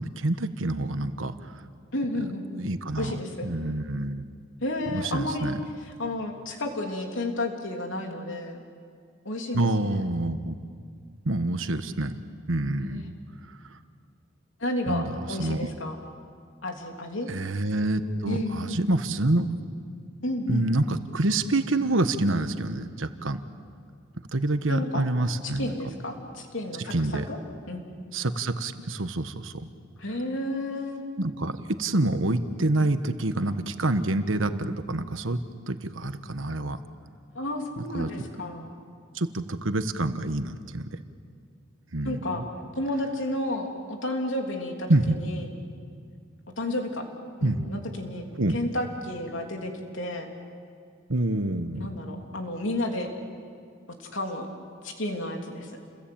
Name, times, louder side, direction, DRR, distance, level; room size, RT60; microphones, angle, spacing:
voice 1, 0.0-1.5 2.6-4.2 4.9-5.6 9.5-10.5 11.2-12.1 12.5-13.1 13.7-13.8 14.9-15.7 17.3-19.5 20.5-23.4 24.3-25.7 26.8-27.3 28.1-29.7 31.2-35.4 35.7-36.8 37.9-38.1 39.1-41.0 41.9-42.4 44.9-45.2 47.4-47.7 48.4-48.6 51.1-51.9, right 2 dB, 80° right, 9 dB, 1.3 m, -27 dB
voice 2, 1.9-2.5 3.0-3.5 4.6-8.6 9.3-10.1 12.8-13.0 14.6-16.0 16.6-17.3 18.3-18.8 20.2-20.7 24.7-25.0 25.4-26.9 27.3-27.4 27.7-28.0 30.0-31.0 37.4-38.8 42.0-42.4 42.8-45.6 46.6-47.1 47.4-48.3 48.5-50.3 51.8-53.1 54.0-54.5 54.8-55.7, left 1 dB, 75° left, 2 dB, 3.3 m, -32 dB
29.5 x 22.0 x 8.8 m, 2.2 s
head